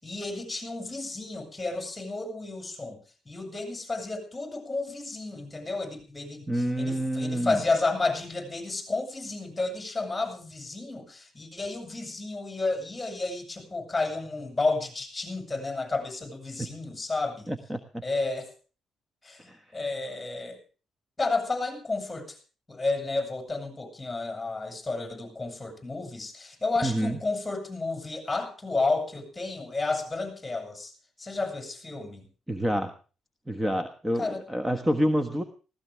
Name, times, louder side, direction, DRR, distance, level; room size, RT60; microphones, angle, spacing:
voice 1, 0.0-3.0 3.3-17.5 18.0-18.5 19.2-20.6 21.2-22.4 22.7-30.9 31.2-32.3 34.2-34.4, left 3 dB, 15° left, 7 dB, 7.0 m, -31 dB
voice 2, 6.5-7.6 17.5-18.0 19.5-19.8 26.8-27.2 32.5-32.9 33.5-35.4, equal, 10° right, 8 dB, 1.4 m, -28 dB
19.5 x 16.5 x 3.5 m, 0.36 s
cardioid pair, 90°, 0 cm